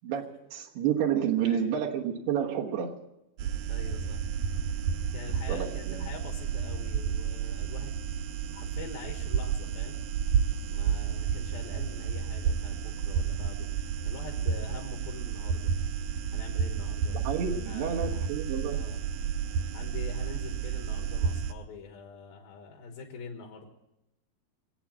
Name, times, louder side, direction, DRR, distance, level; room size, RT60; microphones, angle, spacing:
voice 1, 0.0-3.0 5.5-6.1 17.1-18.8, right 8 dB, 90° right, 0 dB, 3.4 m, -30 dB
voice 2, 1.4-1.8 3.7-4.2 5.1-7.9 8.5-10.0 10.7-13.7 14.0-15.7 16.3-17.2 17.7-18.2 18.7-19.0 19.7-23.7, left 4 dB, 70° left, 1 dB, 3.2 m, -44 dB
sound 1, 3.4-21.5, right 7 dB, 75° right, 2.5 m, -31 dB
22.0 x 8.5 x 7.6 m, 0.91 s
omnidirectional pair, 4.4 m